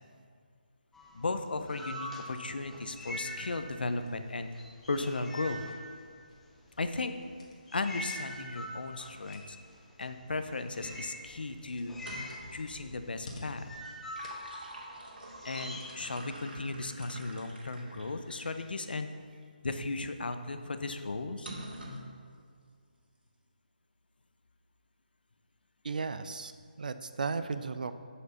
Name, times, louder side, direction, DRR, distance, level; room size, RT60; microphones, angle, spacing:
sound 1, 0.9-17.9, left 2 dB, 45° left, 1.5 m, -57 dB
sound 2, 0.9-4.0 4.3-6.6 7.2-16.4, left 1 dB, 5° left, 0.6 m, -44 dB
voice 1, 1.1-4.5 4.9-5.6 6.8-7.1 7.7-9.6 10.0-12.0 12.5-13.7 15.4-19.1 19.6-21.5, left 3 dB, 75° left, 8 dB, 0.8 m, -35 dB
sound 3, 12.0-12.6 13.8-18.7 19.3-19.4 21.4-22.1, right 1 dB, 90° right, 2.4 m, -46 dB
voice 2, 25.8-26.5 26.8-27.9, right 4 dB, 55° right, 11 dB, 0.5 m, -35 dB
7.4 x 6.8 x 5.7 m, 2.1 s
hypercardioid pair, 170°, 5 cm